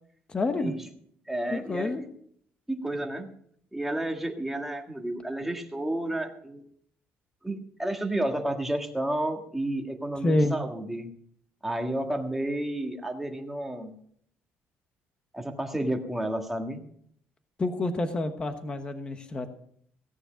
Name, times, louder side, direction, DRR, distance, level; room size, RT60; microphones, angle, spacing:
voice 1, 0.3-0.7 1.5-2.0 10.2-10.5 17.6-19.5, left 2 dB, 20° left, 8 dB, 1.1 m, -28 dB
voice 2, 1.3-2.0 2.7-3.3 3.7-6.6 7.4-11.1 11.6-13.9 15.3-16.8, right 1 dB, 5° right, 3 dB, 1.6 m, -31 dB
16.5 x 9.8 x 5.1 m, 0.64 s
cardioid pair, 155°, 4 cm